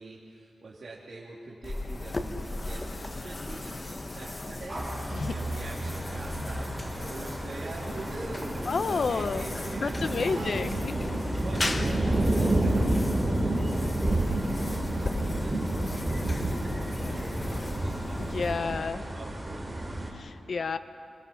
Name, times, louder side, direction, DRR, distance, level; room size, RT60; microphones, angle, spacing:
voice 1, 0.0-10.7 11.1-12.9 13.2-14.2 14.4-18.8 19.1-20.0, right 3 dB, 50° right, -6 dB, 2.8 m, -45 dB
sound 1, 1.6-19.0, left 2 dB, 25° left, 0.9 m, -37 dB
sound 2, 4.7-20.1, right 1 dB, 10° right, 2.9 m, -30 dB
voice 2, 8.7-10.9 18.2-19.1 20.1-20.8, left 4 dB, 55° left, 10 dB, 0.7 m, -30 dB
25.5 x 23.0 x 5.8 m, 2.6 s
wide cardioid pair, 160°, 0 cm